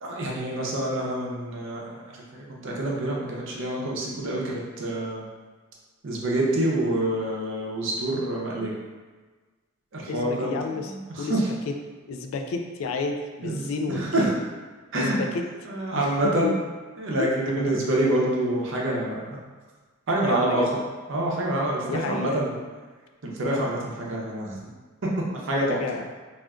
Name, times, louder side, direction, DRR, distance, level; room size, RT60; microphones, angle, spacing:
voice 1, 0.0-5.2 6.0-8.7 9.9-10.5 11.2-11.5 13.4-14.3 14.9-15.2 15.7-16.5 17.0-19.4 20.1-20.6 21.1-22.5 23.2-24.6 25.2-25.8, right 1 dB, 65° right, -3 dB, 0.6 m, -27 dB
voice 2, 10.0-11.4 11.7-11.8 12.1-14.3 15.0-15.4 16.0-16.2 16.4-16.6 17.2-17.8 20.2-20.7 21.9-22.4 25.7-26.0, left 4 dB, 80° left, 5 dB, 0.3 m, -31 dB
3.5 x 2.4 x 2.2 m, 1.4 s
head